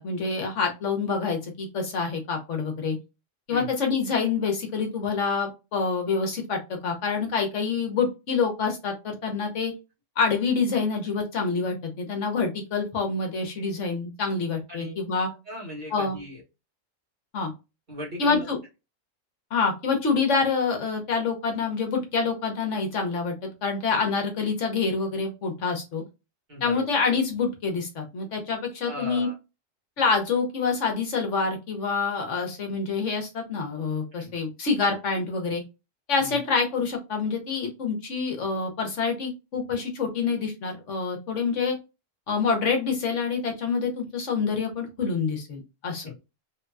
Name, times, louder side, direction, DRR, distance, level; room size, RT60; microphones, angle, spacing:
voice 1, 0.0-3.0 3.5-9.7 10.2-15.3 15.9-16.2 17.3-17.5 18.2-18.6 19.5-26.0 26.6-29.3 30.0-35.6 36.1-41.8 42.3-46.0, left 4 dB, 65° left, 3 dB, 1.2 m, -27 dB
voice 2, 15.4-16.4 17.9-18.4 26.5-26.9 28.8-29.3 34.1-34.4 36.2-36.4 46.0-46.2, left 1 dB, 40° right, -4 dB, 1.5 m, -37 dB
3.2 x 2.8 x 2.3 m, 0.26 s
omnidirectional pair, 1.4 m